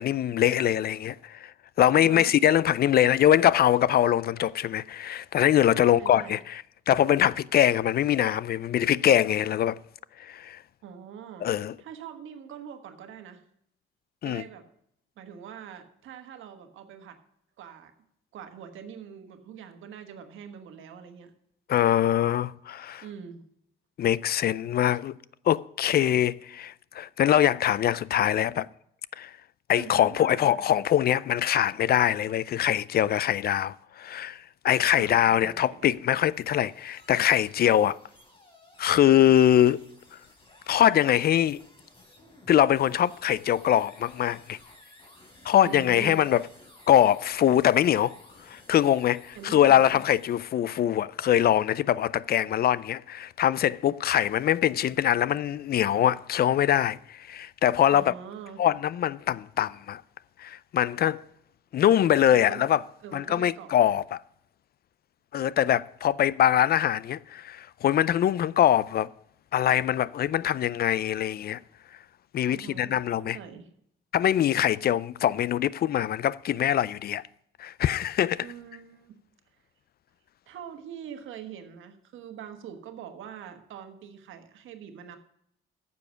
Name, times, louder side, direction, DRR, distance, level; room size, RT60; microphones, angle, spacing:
voice 1, 0.0-1.5 1.8-9.8 10.2-10.6 11.4-11.7 14.2-14.4 21.7-23.0 24.0-25.1 25.5-28.7 29.2-29.3 29.7-38.0 38.8-39.9 40.7-41.6 42.5-44.6 45.5-46.4 46.9-48.2 48.5-58.1 58.6-60.0 60.4-61.2 61.7-62.8 63.1-64.2 65.3-69.1 69.5-71.6 72.3-73.4 74.1-77.2 77.6-78.5, left 11 dB, 50° left, 0.4 m, -23 dB
voice 2, 1.9-2.3 5.7-6.4 10.8-11.5 11.8-13.4 14.2-14.7 15.2-17.2 17.6-17.9 18.3-21.3 23.0-23.4 29.7-30.6 34.9-35.9 45.6-46.3 49.3-50.0 57.9-58.6 62.3-62.7 63.0-63.8 72.5-73.7 78.4-79.2 80.5-85.2, right 8 dB, 80° right, 1.3 m, -43 dB
sound 1, 36.0-50.6, left 1 dB, 25° left, 3.5 m, -55 dB
9.6 x 7.1 x 6.2 m
cardioid pair, 90°, 20 cm